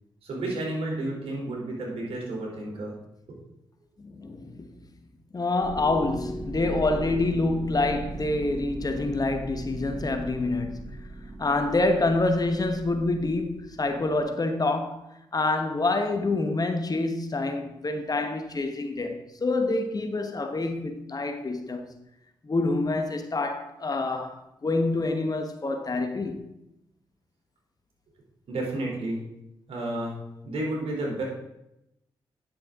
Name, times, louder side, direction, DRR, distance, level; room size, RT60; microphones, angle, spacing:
voice 1, 0.2-2.9 3.3-3.4 28.5-29.2 29.7-30.2 30.4-31.2, right 2 dB, 65° right, 3.2 m, -31 dB
voice 2, 4.0-4.8 5.3-11.0 11.4-15.1 15.3-21.9 22.4-26.4, left 2 dB, 35° left, 1.1 m, -27 dB
sound 1, 5.6-14.3, right 2 dB, 40° right, 3.7 m, -39 dB
10.0 x 6.7 x 3.6 m
hypercardioid pair, 40°, 10 cm